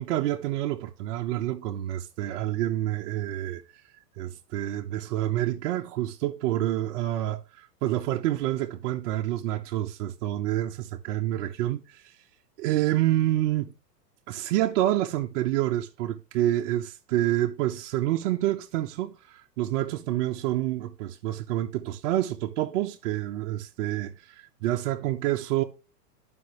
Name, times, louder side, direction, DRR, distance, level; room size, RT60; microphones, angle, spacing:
voice 1, 0.0-3.6 4.2-12.1 12.6-13.7 14.3-25.6, right 14 dB, 50° right, 1.0 m, -28 dB
11.5 x 5.5 x 3.2 m
hypercardioid pair, 150°, 49 cm